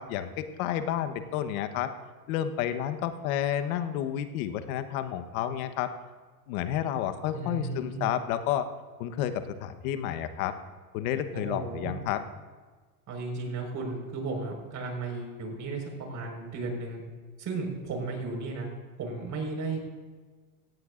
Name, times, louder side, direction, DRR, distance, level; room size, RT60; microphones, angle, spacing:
voice 1, 0.0-1.9 2.3-5.9 6.5-8.7 9.0-9.3 9.6-10.6 10.9-12.2, left 10 dB, 65° left, 10 dB, 1.2 m, -30 dB
voice 2, 7.3-8.0 11.3-12.0 13.1-17.0 17.4-19.9, right 3 dB, 40° right, 2 dB, 4.9 m, -35 dB
17.0 x 15.5 x 2.5 m, 1.4 s
supercardioid pair, 105°, 44 cm